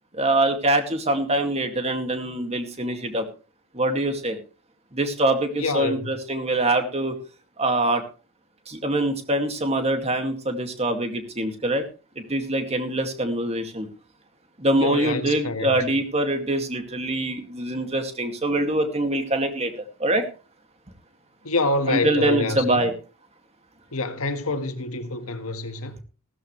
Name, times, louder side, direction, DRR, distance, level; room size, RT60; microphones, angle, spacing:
voice 1, 0.2-3.2 3.7-4.4 4.9-7.2 7.6-8.0 8.7-11.8 12.2-13.9 14.6-19.7 20.0-20.2 21.9-22.9, right 1 dB, 30° right, 2.2 m, -24 dB
voice 2, 5.6-6.1 14.7-15.8 21.4-22.9 23.9-26.0, left 2 dB, 90° left, 1.7 m, -27 dB
16.0 x 13.5 x 3.2 m
head